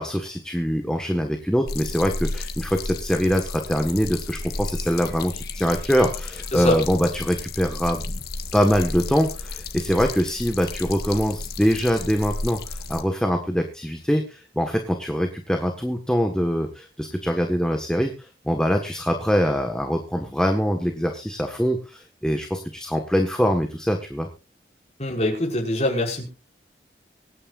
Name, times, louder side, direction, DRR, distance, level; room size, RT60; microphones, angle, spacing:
voice 1, 0.0-8.2 8.5-24.3, equal, 5° left, 4 dB, 1.5 m, -23 dB
sound 1, 1.7-13.0, left 3 dB, 55° left, 1.5 m, -33 dB
voice 2, 25.0-26.2, left 1 dB, 35° left, 0 dB, 5.6 m, -24 dB
24.5 x 9.8 x 2.5 m, 0.30 s
head